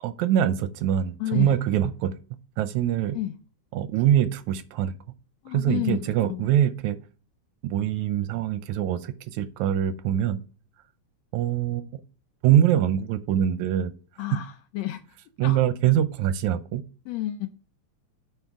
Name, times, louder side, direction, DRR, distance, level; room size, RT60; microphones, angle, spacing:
voice 1, 0.0-2.1 2.6-3.2 3.7-4.9 5.5-7.0 7.6-10.4 11.3-12.0 12.4-13.9 15.4-16.8, right 11 dB, 80° right, 1.9 m, -24 dB
voice 2, 1.2-1.6 3.1-3.3 5.5-6.0 6.3-6.5 14.2-15.0 15.4-15.6 17.1-17.5, left 15 dB, 75° left, 1.6 m, -30 dB
9.3 x 4.6 x 3.5 m
omnidirectional pair, 3.5 m